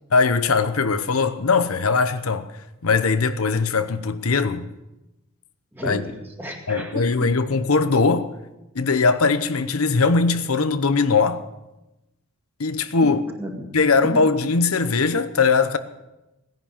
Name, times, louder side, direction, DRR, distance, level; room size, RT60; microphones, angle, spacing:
voice 1, 0.1-2.5 2.8-4.7 5.8-6.0 6.7-8.3 8.7-11.4 12.6-13.2 13.7-15.8, left 4 dB, 85° left, 0.9 m, -20 dB
voice 2, 5.7-7.3 13.0-13.7 14.0-14.3, equal, 10° right, 2.1 m, -33 dB
17.0 x 11.0 x 7.2 m
head